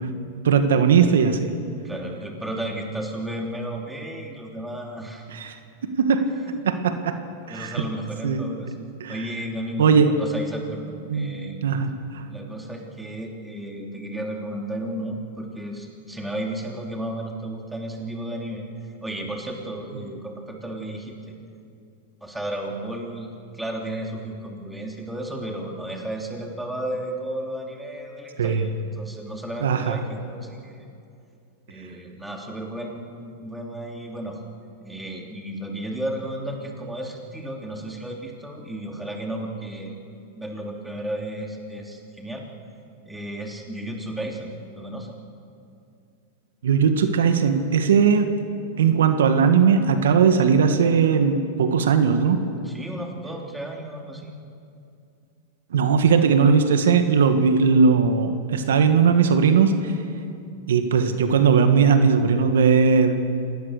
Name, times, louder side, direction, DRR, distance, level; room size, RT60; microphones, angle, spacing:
voice 1, 0.4-1.4 5.3-5.5 5.8-6.2 6.7-7.1 7.5-7.8 8.2-8.4 9.0-9.2 9.8-10.1 11.1-11.3 11.6-12.2 28.4-28.7 29.6-30.0 46.6-48.3 48.8-52.4 55.7-59.9 60.7-63.3, right 6 dB, 85° right, 7 dB, 1.7 m, -19 dB
voice 2, 1.8-5.2 6.3-6.6 7.4-8.7 9.1-11.6 12.3-18.7 19.0-21.2 22.2-30.9 31.7-34.4 34.8-40.0 40.3-42.5 43.0-45.1 52.6-54.4, right 1 dB, 5° right, 0 dB, 3.2 m, -33 dB
26.5 x 18.5 x 6.7 m, 2.5 s
hypercardioid pair, 130°, 0 cm